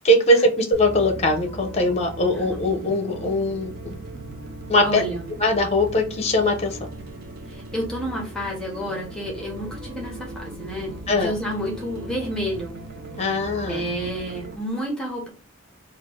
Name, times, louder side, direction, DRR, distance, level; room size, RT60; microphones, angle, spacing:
voice 1, 0.0-4.0 4.7-5.0 5.4-6.8 11.1-11.3 13.2-13.8, left 1 dB, 30° left, 4 dB, 0.7 m, -21 dB
sound 1, 0.7-14.6, right 2 dB, 50° right, 0.6 m, -38 dB
voice 2, 4.8-5.3 7.5-12.7 13.7-15.3, equal, 5° left, -1 dB, 1.1 m, -30 dB
3.3 x 2.4 x 4.3 m, 0.35 s
head